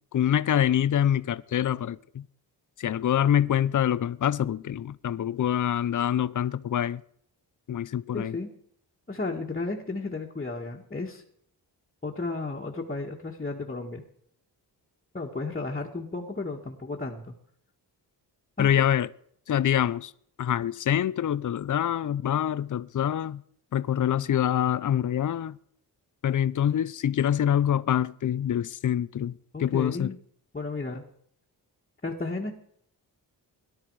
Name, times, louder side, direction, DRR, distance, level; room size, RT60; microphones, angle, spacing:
voice 1, 0.1-2.2 2.8-7.0 7.7-8.4 18.6-19.1 19.5-20.1 20.4-23.4 23.7-25.6 26.2-30.1, left 10 dB, 50° left, 0.6 m, -25 dB
voice 2, 8.1-8.5 9.1-11.2 12.0-14.0 15.1-17.3 18.6-18.9 29.5-30.2 30.5-31.0 32.0-32.5, left 3 dB, 20° left, 1.8 m, -33 dB
18.0 x 12.0 x 4.7 m
wide cardioid pair, 115°, 41 cm